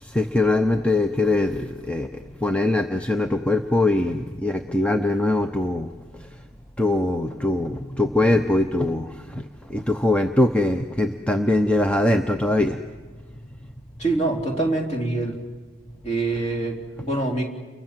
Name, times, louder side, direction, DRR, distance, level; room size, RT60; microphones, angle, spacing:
voice 1, 0.0-5.9 6.2-6.3 6.8-12.8, left 2 dB, 5° left, 6 dB, 0.7 m, -22 dB
voice 2, 14.0-15.4 16.0-17.4, right 2 dB, 30° left, 2 dB, 3.6 m, -25 dB
29.5 x 23.5 x 7.5 m, 1.4 s
head